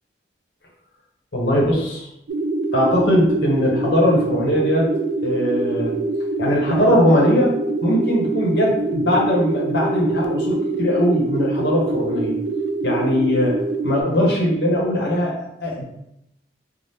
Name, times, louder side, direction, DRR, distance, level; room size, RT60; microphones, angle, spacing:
voice 1, 1.3-2.1 2.7-4.9 5.2-6.0 6.4-12.3 12.8-15.8, equal, 70° left, -3 dB, 0.8 m, -20 dB
sound 1, 2.3-14.0, right 2 dB, 80° right, 0.3 m, -24 dB
2.7 x 2.0 x 3.4 m, 0.80 s
head